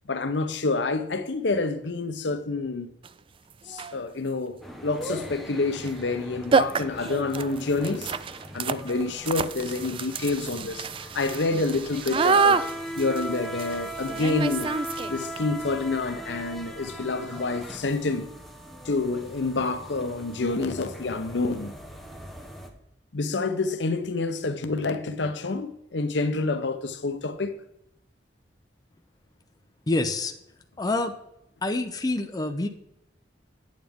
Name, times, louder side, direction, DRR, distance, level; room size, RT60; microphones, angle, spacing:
voice 1, 0.1-2.9 3.7-8.2 8.5-10.9 11.1-12.6 13.0-14.8 15.1-18.3 18.8-21.7 23.1-27.6, left 3 dB, 70° left, 0.8 m, -28 dB
sound 1, 3.0-3.1 3.7-4.0 5.8-5.9 6.2-6.3 6.5-15.4, right 5 dB, 30° right, 0.3 m, -27 dB
sound 2, 4.6-22.7, equal, ahead, 1.0 m, -39 dB
voice 2, 29.9-30.3 30.8-31.1 31.6-32.7, left 2 dB, 20° left, 0.6 m, -26 dB
9.1 x 8.9 x 3.6 m
head